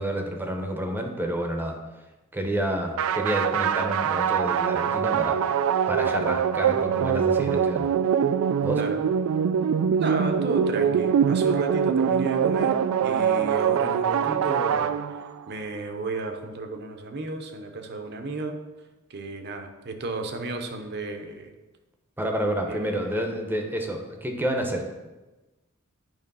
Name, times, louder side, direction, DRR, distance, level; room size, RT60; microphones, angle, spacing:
voice 1, 0.0-1.7 2.3-5.5 5.9-7.9 8.6-8.8 22.2-24.9, right 1 dB, 10° right, 3 dB, 0.7 m, -29 dB
sound 1, 3.0-15.5, right 8 dB, 70° right, 0.3 m, -23 dB
voice 2, 10.0-14.9 15.5-18.6 19.1-21.5 22.7-23.1, right 3 dB, 50° right, 5 dB, 0.8 m, -33 dB
9.1 x 3.1 x 5.4 m, 1.1 s
head